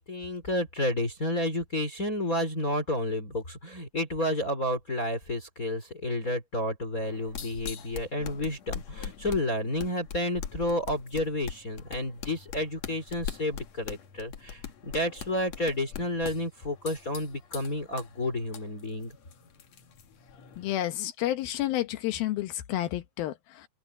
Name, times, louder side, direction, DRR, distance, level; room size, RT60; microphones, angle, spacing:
voice 1, 0.0-19.1, left 1 dB, 25° left, 4.1 m, -31 dB
sound 1, 7.0-20.7, left 8 dB, 55° left, 2.4 m, -42 dB
voice 2, 20.6-23.7, left 14 dB, 80° left, 2.9 m, -30 dB
open air
omnidirectional pair, 4.2 m